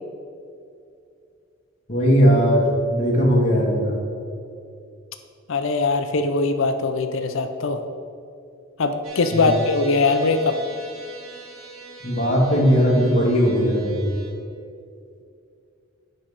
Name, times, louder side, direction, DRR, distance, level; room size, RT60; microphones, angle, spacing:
voice 1, 1.9-4.0 9.3-9.5 12.0-14.1, equal, 35° left, -5 dB, 1.6 m, -18 dB
voice 2, 5.5-7.8 8.8-10.6, left 3 dB, 70° left, 7 dB, 0.5 m, -21 dB
sound 1, 9.0-14.3, right 3 dB, 85° right, 1.6 m, -42 dB
8.9 x 5.5 x 4.9 m, 2.4 s
head